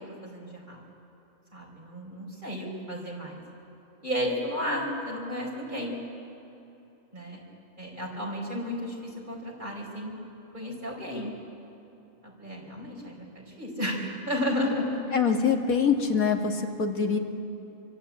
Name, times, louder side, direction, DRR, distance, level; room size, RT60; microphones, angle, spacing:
voice 1, 0.2-0.8 1.5-3.4 4.0-6.0 7.1-7.4 7.8-10.1 10.5-11.3 12.2-15.2, left 1 dB, 35° right, -1 dB, 5.3 m, -33 dB
voice 2, 15.1-17.2, left 6 dB, 80° left, 3 dB, 2.3 m, -24 dB
27.0 x 24.0 x 8.7 m, 2.9 s
omnidirectional pair, 1.5 m